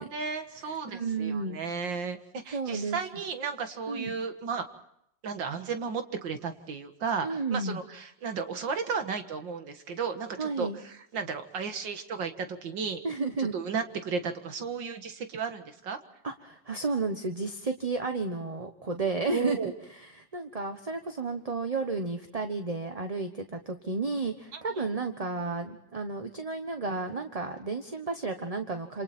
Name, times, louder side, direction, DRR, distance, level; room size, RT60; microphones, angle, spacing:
voice 1, 0.0-4.7 5.2-13.0 13.4-16.0 19.3-19.7 24.5-25.0, right 5 dB, 80° right, 7 dB, 2.4 m, -34 dB
voice 2, 0.6-1.6 2.5-3.0 3.9-4.1 7.2-7.8 10.4-10.8 13.0-13.5 16.2-19.7 20.0-29.0, right 3 dB, 25° right, 6 dB, 1.0 m, -32 dB
27.5 x 27.0 x 4.3 m, 0.73 s
omnidirectional pair, 2.0 m